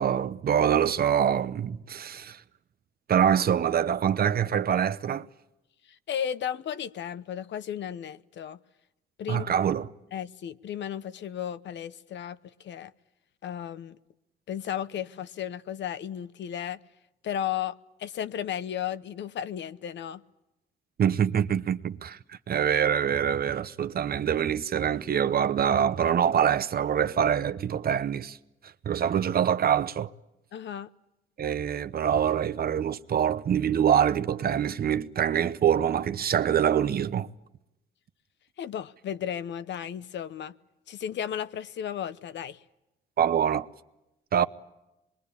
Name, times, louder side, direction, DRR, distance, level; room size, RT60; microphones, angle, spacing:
voice 1, 0.0-2.4 3.1-5.3 9.3-9.9 21.0-28.4 28.9-30.1 31.4-37.3 43.2-43.7 44.3-44.4, right 8 dB, 50° right, 0.9 m, -25 dB
voice 2, 5.9-8.6 9.2-9.5 10.1-12.9 13.4-14.0 14.5-16.8 17.2-20.2 30.5-30.9 38.6-40.5 40.9-42.6, left 9 dB, 65° left, 0.9 m, -34 dB
25.5 x 22.0 x 8.5 m
cardioid pair, 90°, 20 cm